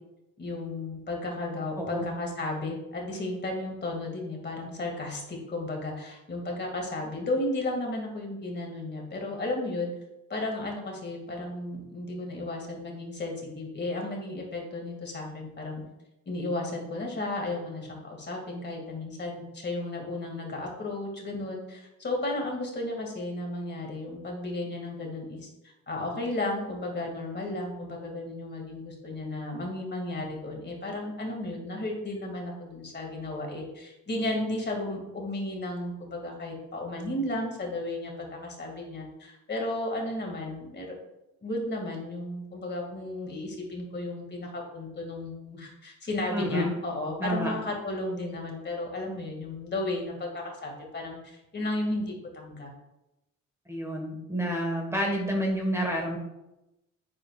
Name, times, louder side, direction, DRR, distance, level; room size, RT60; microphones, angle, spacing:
voice 1, 0.4-9.9 10.3-15.8 16.3-25.5 25.9-41.0 41.4-52.7, left 2 dB, 35° left, 0 dB, 2.2 m, -34 dB
voice 2, 46.3-46.7 47.2-47.5 53.7-56.2, equal, 10° right, 0 dB, 1.5 m, -29 dB
8.6 x 7.2 x 2.4 m, 0.92 s
cardioid pair, 90°, 30 cm